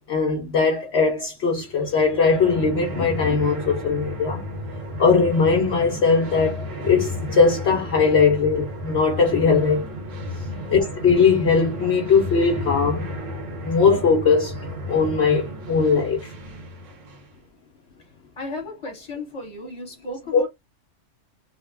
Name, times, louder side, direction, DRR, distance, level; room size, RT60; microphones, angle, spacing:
voice 1, 0.1-4.4 5.0-9.9 10.7-13.1 13.6-14.6 14.9-16.3 20.3-20.4, left 5 dB, 65° left, 0.9 m, -20 dB
sound 1, 1.6-17.4, left 1 dB, 80° right, 1.4 m, -33 dB
voice 2, 10.4-10.8 18.4-20.5, left 2 dB, 25° left, 1.4 m, -35 dB
3.3 x 2.2 x 3.3 m
omnidirectional pair, 1.3 m